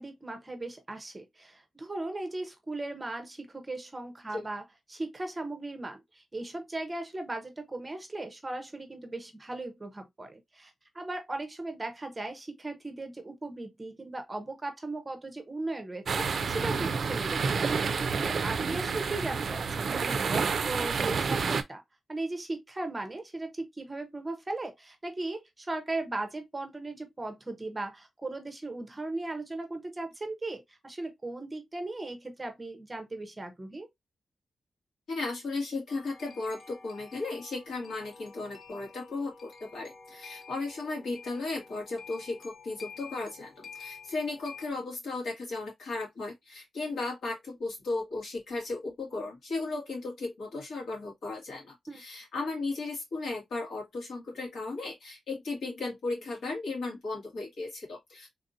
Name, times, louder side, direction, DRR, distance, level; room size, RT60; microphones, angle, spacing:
voice 1, 0.0-17.8 18.3-21.8 22.1-33.9 51.9-52.0, right 2 dB, 20° right, 0.7 m, -37 dB
sound 1, 16.1-21.6, right 5 dB, 50° right, 0.4 m, -29 dB
voice 2, 35.1-58.3, left 3 dB, 85° left, 2.1 m, -35 dB
sound 2, 35.9-44.7, left 5 dB, 45° left, 0.6 m, -50 dB
3.4 x 2.6 x 2.6 m
wide cardioid pair, 150°, 0 cm